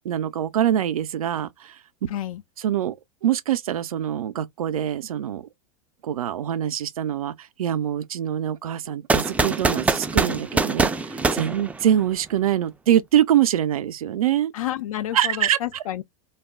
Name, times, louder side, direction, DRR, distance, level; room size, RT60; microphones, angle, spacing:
voice 1, 0.0-1.8 2.6-3.0 3.2-5.4 6.0-14.5 15.1-15.6, right 10 dB, 90° right, 0.5 m, -24 dB
voice 2, 2.1-2.4 14.5-16.0, left 12 dB, 80° left, 0.4 m, -30 dB
sound 1, 9.1-12.3, right 3 dB, 10° right, 0.3 m, -23 dB
2.3 x 2.1 x 3.5 m
hypercardioid pair, 110°, 18 cm